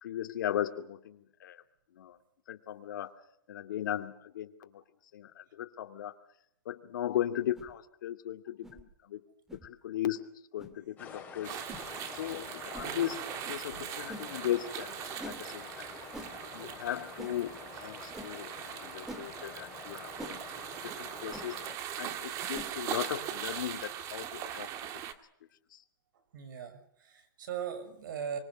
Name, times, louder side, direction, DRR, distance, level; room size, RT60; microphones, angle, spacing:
voice 1, 0.0-1.6 1.9-2.2 2.5-3.1 3.5-4.8 5.1-6.2 6.6-9.2 9.5-10.3 10.5-11.6 12.1-15.9 16.5-21.6 22.0-24.7 25.7-25.8, left 11 dB, 65° left, 7 dB, 2.6 m, -37 dB
sound 1, 7.5-7.7 8.6-8.8 9.5-9.7 10.6-10.7 11.7-11.9 12.7-12.9 14.1-14.3 15.2-15.4 16.1-16.3 17.2-17.4 18.1-18.3 19.1-19.3 20.2-20.4 21.3-21.5 22.5-22.7, right 1 dB, 5° right, 2.3 m, -44 dB
sound 2, 11.0-21.8, left 5 dB, 10° left, 6.2 m, -48 dB
sound 3, 11.4-25.1, right 10 dB, 30° right, 1.8 m, -41 dB
voice 2, 26.3-28.4, right 8 dB, 65° right, 12 dB, 6.3 m, -39 dB
24.5 x 22.0 x 6.5 m, 0.72 s
hypercardioid pair, 155°, 11 cm